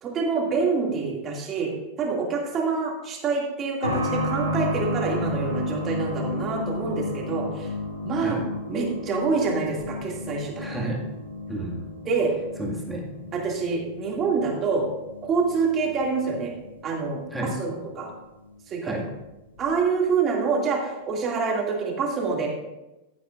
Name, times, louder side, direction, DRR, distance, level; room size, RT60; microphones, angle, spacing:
voice 1, 0.0-1.7 2.0-7.7 8.0-8.4 8.7-10.7 12.1-12.3 13.3-14.9 15.2-16.5 16.8-17.2 17.6-18.1 18.7-18.9 19.6-22.5, right 4 dB, 30° right, -1 dB, 2.3 m, -26 dB
sound 1, 3.8-18.2 18.5-18.6 19.6-19.7, left 2 dB, 85° left, 1.9 m, -33 dB
voice 2, 10.6-11.0 11.5-11.9 12.6-13.1 17.3-17.6 18.8-19.1, right 1 dB, 5° right, -2 dB, 2.0 m, -31 dB
15.0 x 8.6 x 2.5 m, 1.0 s
figure-of-eight pair, 90°, 0 cm